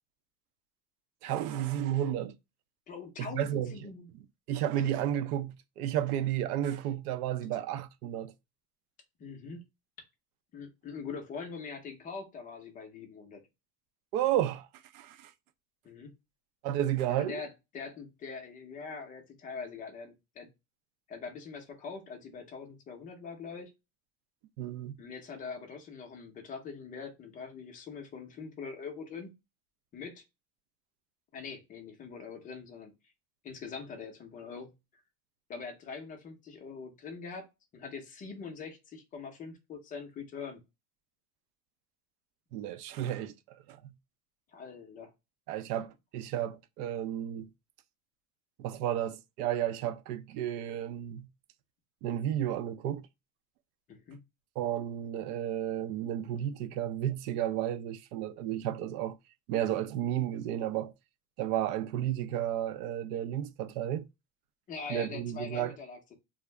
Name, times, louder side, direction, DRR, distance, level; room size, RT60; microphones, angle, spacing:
voice 1, 1.2-2.3 3.2-3.8 4.5-8.3 14.1-14.7 14.9-15.3 16.6-17.4 24.6-25.0 42.5-43.8 45.5-47.5 48.6-51.3 52.0-53.1 54.6-59.2 59.5-60.9 61.4-64.0 64.9-65.8, right 11 dB, 80° right, 0.6 m, -32 dB
voice 2, 2.9-4.1 9.2-9.6 10.5-13.5 15.8-16.1 17.1-20.5 21.1-23.7 25.0-29.3 29.9-30.2 31.3-32.9 33.4-34.8 35.5-37.5 37.7-40.6 44.5-45.1 53.9-54.2 64.7-66.2, left 5 dB, 20° left, 0.4 m, -43 dB
2.4 x 2.0 x 3.1 m
supercardioid pair, 150°, 45 cm